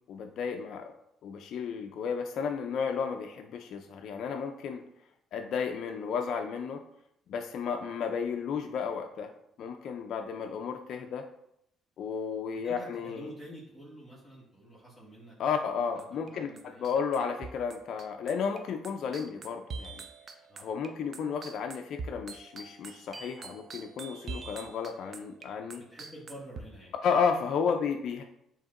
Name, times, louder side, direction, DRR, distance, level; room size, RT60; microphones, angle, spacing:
voice 1, 0.1-0.9 1.2-4.8 5.3-6.8 7.3-9.3 9.6-11.3 12.0-13.3 15.4-20.0 20.6-25.8 27.0-28.2, left 6 dB, 65° left, 4 dB, 0.3 m, -33 dB
voice 2, 12.6-16.8 20.5-20.7 25.8-27.0, equal, 5° right, -8 dB, 1.4 m, -49 dB
sound 1, 16.0-16.3 16.6-26.6, right 4 dB, 45° right, 0.5 m, -44 dB
6.9 x 2.9 x 2.5 m, 0.77 s
supercardioid pair, 70°, 0 cm